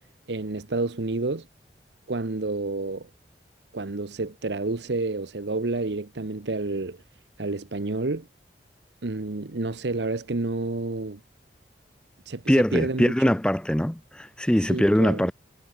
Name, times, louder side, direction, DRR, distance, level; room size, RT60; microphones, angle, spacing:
voice 1, 0.3-1.5 2.1-3.1 3.7-7.0 7.4-8.3 9.0-11.2 12.3-13.3 14.7-15.3, right 2 dB, 80° right, 1.0 m, -29 dB
voice 2, 12.5-15.3, equal, 5° left, 0.6 m, -22 dB
head